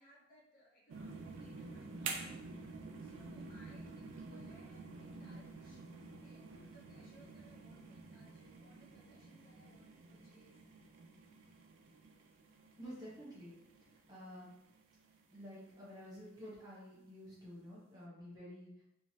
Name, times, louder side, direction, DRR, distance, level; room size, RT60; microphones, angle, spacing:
voice 1, 0.0-10.6, equal, 40° left, -4 dB, 0.6 m, -65 dB
Water Boiling in a Kettle with Switch Off, 0.9-15.8 16.3-16.4, right 4 dB, 65° right, 0.4 m, -50 dB
voice 2, 12.8-13.6 14.1-14.5 15.3-18.8, equal, 20° right, -7 dB, 0.9 m, -50 dB
3.0 x 2.4 x 2.7 m, 0.80 s
head